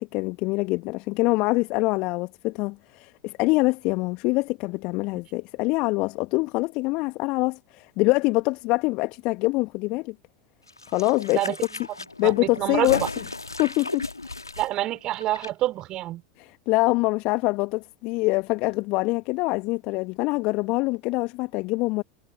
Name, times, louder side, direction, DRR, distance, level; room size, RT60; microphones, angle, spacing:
voice 1, 0.0-10.1 10.9-11.5 12.2-13.2 13.6-14.0 16.4-22.0, left 24 dB, 45° left, 1.6 m, -25 dB
sound 1, 10.7-15.5 15.8-15.9, left 3 dB, 85° left, 1.6 m, -35 dB
voice 2, 12.2-12.9 14.6-16.2, right 15 dB, 40° right, 3.0 m, -27 dB
figure-of-eight pair, 80°, 2 cm